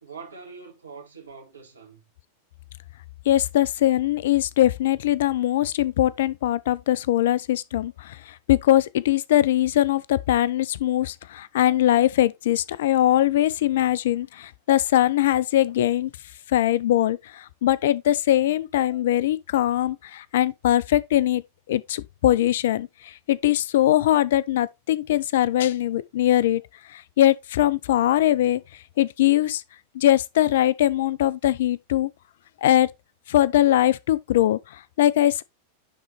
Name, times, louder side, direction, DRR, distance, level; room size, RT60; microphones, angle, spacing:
voice 1, 0.0-2.0, right 5 dB, 75° right, 2.0 m, -43 dB
voice 2, 3.3-16.1 16.5-21.4 21.7-26.6 26.9-28.6 29.0-29.6 29.9-32.1 32.6-32.9 33.3-35.4, left 13 dB, 55° left, 0.4 m, -21 dB
10.0 x 3.9 x 3.1 m
figure-of-eight pair, 90°, 0 cm